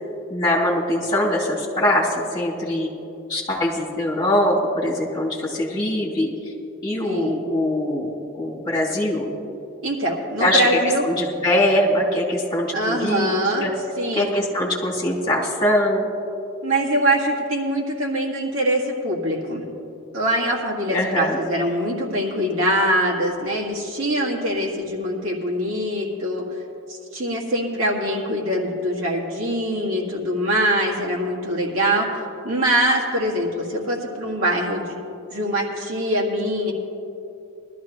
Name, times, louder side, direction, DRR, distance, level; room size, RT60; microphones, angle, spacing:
voice 1, 0.3-2.9 3.3-6.3 6.8-8.1 8.3-9.3 10.4-10.7 11.0-13.7 14.1-16.1 20.9-21.4, left 1 dB, 20° left, -5 dB, 2.8 m, -22 dB
voice 2, 7.0-7.4 9.8-11.1 12.7-13.7 14.0-14.3 16.6-19.6 20.1-26.4 26.9-35.0 35.3-36.7, right 1 dB, 85° right, -3 dB, 1.9 m, -23 dB
19.5 x 13.0 x 3.0 m, 2.8 s
head